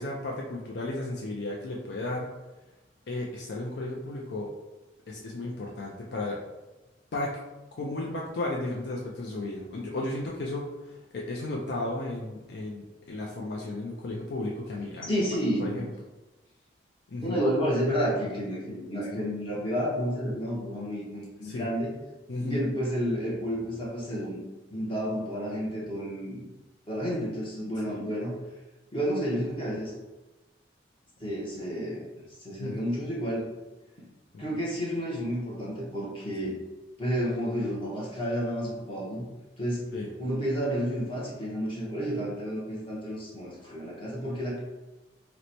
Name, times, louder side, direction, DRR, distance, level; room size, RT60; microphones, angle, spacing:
voice 1, 0.0-2.3 3.1-4.5 5.1-6.4 7.1-7.4 7.8-15.2 15.6-15.9 17.1-17.4 19.1-19.2 21.4-21.6 22.3-22.6 27.9-28.0 32.6-32.7 34.3-34.4 39.9-40.1, left 2 dB, 65° left, -3 dB, 0.4 m, -34 dB
voice 2, 15.0-15.8 17.2-21.9 22.4-24.4 24.7-26.4 26.9-28.3 28.9-29.9 31.2-32.0 32.4-33.4 34.4-36.5 37.0-39.3 39.6-39.9 40.2-44.6, equal, 25° left, -5 dB, 0.7 m, -30 dB
2.9 x 2.1 x 3.9 m, 1.1 s
head